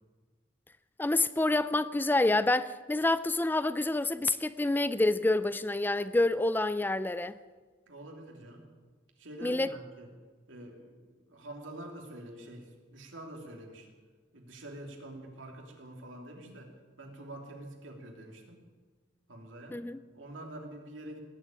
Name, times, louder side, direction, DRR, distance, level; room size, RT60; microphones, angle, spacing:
voice 1, 1.0-7.3 9.4-9.7 19.7-20.0, left 2 dB, 10° left, 0.4 m, -27 dB
voice 2, 7.9-8.6 9.2-10.1 10.5-13.9 14.3-16.7 17.0-18.6 19.3-19.8 20.1-21.2, right 1 dB, 90° right, 2.9 m, -46 dB
18.5 x 7.7 x 9.0 m
head